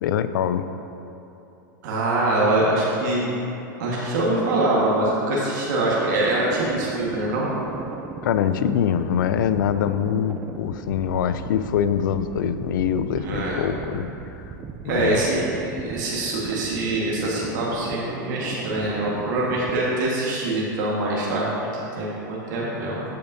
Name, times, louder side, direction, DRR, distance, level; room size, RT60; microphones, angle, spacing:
voice 1, 0.0-0.6 8.2-14.1 14.8-15.2, left 9 dB, 75° left, 12 dB, 0.4 m, -24 dB
voice 2, 1.8-3.3 3.8-7.5 13.2-13.6 14.8-15.5 15.8-23.0, right 2 dB, 65° right, -5 dB, 1.5 m, -24 dB
sound 1, 5.8-20.0, right 4 dB, 15° right, 0.3 m, -38 dB
13.5 x 5.2 x 2.7 m, 3.0 s
hypercardioid pair, 130°, 11 cm